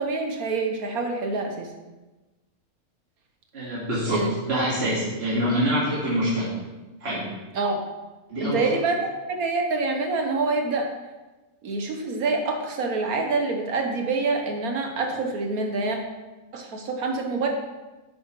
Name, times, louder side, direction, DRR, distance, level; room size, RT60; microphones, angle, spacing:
voice 1, 0.0-1.7 4.1-4.3 7.5-7.8 8.4-10.9 11.6-16.0 16.5-17.5, right 3 dB, 80° right, 2 dB, 1.6 m, -26 dB
voice 2, 3.5-6.5 7.0-7.3 8.3-8.7, equal, 45° right, -8 dB, 2.3 m, -25 dB
10.5 x 8.2 x 3.2 m, 1.1 s
omnidirectional pair, 1.5 m